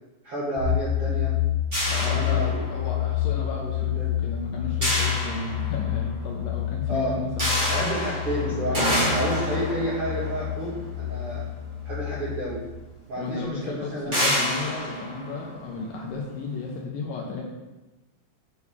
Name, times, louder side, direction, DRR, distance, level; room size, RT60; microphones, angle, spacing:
voice 1, 0.2-1.3 1.9-2.7 3.7-4.1 6.9-7.2 7.7-8.8 9.1-11.4 11.8-12.6 13.1-14.2, right 1 dB, 60° right, -8 dB, 1.5 m, -30 dB
sound 1, 0.6-12.4, left 12 dB, 80° right, 3.9 m, -29 dB
sound 2, 1.7-3.1 4.8-6.1 7.4-11.8 12.8-12.9 13.2-13.4 14.1-16.1, equal, 35° right, 0.7 m, -28 dB
voice 2, 1.8-7.6 8.4-9.1 13.2-17.4, left 3 dB, 75° left, -1 dB, 2.2 m, -34 dB
8.4 x 6.3 x 3.6 m, 1.1 s
omnidirectional pair, 4.7 m